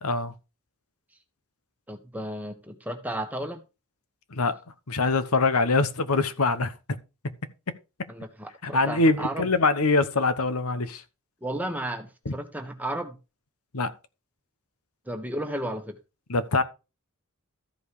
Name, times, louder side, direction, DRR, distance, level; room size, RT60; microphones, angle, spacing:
voice 1, 0.0-0.3 4.3-4.5 4.9-6.7 8.6-11.0 12.2-12.3 13.7-13.9 16.3-16.6, left 3 dB, 85° left, 1.1 m, -23 dB
voice 2, 1.9-3.6 8.1-9.5 11.4-13.2 15.1-16.0, right 1 dB, 5° right, 1.4 m, -33 dB
13.5 x 5.3 x 4.8 m
head